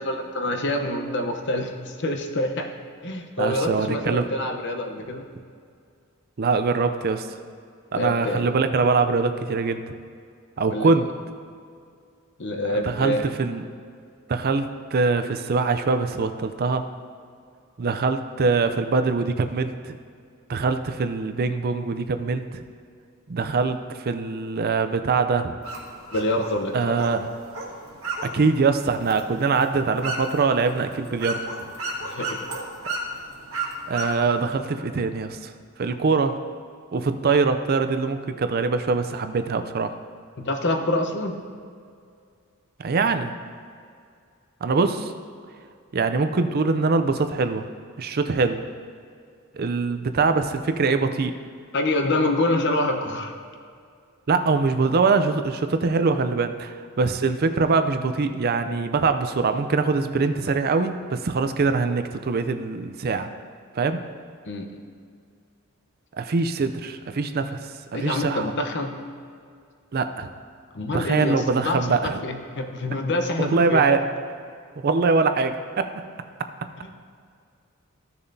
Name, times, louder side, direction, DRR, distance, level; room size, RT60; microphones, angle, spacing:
voice 1, 0.0-2.7 3.0-5.3 7.9-8.5 10.6-11.0 12.4-13.2 26.1-27.0 32.0-32.4 40.4-41.4 51.7-53.4 64.4-64.8 67.9-68.9 70.7-73.9, left 1 dB, 55° left, 4 dB, 0.9 m, -26 dB
voice 2, 3.4-4.3 6.4-7.3 7.9-9.9 10.6-11.1 12.7-13.6 14.3-16.9 17.8-20.0 20.5-22.6 23.3-25.5 26.7-27.3 28.2-31.4 33.9-35.5 35.8-36.4 36.9-39.9 42.8-43.3 44.6-45.1 45.9-47.7 48.0-48.6 49.5-51.3 54.3-63.3 63.7-64.0 66.1-67.6 67.9-68.5 69.9-70.3 70.9-72.2 73.4-74.0 74.8-75.9, right 4 dB, 45° right, 9 dB, 0.5 m, -23 dB
sound 1, 25.6-34.6, right 2 dB, 65° right, 1.6 m, -34 dB
14.5 x 6.8 x 2.7 m, 2.3 s
head